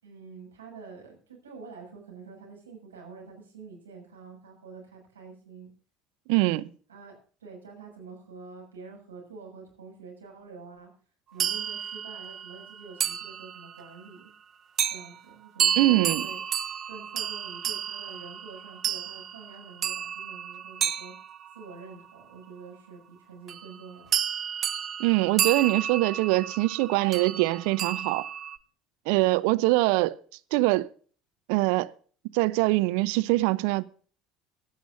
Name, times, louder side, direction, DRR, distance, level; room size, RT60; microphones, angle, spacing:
voice 1, 0.0-5.7 6.9-7.1 7.4-10.9 11.3-14.3 14.9-16.4 16.9-21.1 21.5-24.2, right 4 dB, 85° right, 6.6 m, -46 dB
voice 2, 6.3-6.7 15.8-16.3 25.0-28.3 29.1-30.2 30.5-30.9 31.5-31.9 32.3-33.8, right 20 dB, 65° right, 0.7 m, -23 dB
sound 1, 11.4-13.9 14.8-15.1 15.6-21.9 23.5-23.8 24.1-28.6, right 9 dB, 40° right, 0.9 m, -31 dB
17.5 x 12.5 x 2.6 m
figure-of-eight pair, 65°, 0 cm